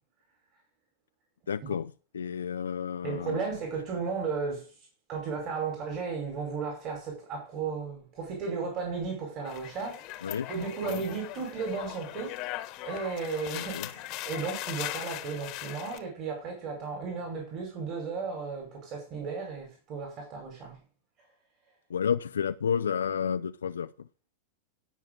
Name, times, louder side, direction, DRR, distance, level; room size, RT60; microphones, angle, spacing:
voice 1, 1.5-3.4 10.2-10.5 10.8-11.0 13.6-13.9 21.9-23.9, left 7 dB, 70° left, 0.5 m, -31 dB
voice 2, 3.0-4.7 5.1-12.4 12.8-20.8, right 5 dB, 40° right, 5.1 m, -34 dB
sound 1, 9.4-16.0, left 16 dB, 40° left, 1.4 m, -39 dB
18.5 x 6.4 x 3.9 m
figure-of-eight pair, 90°, 0 cm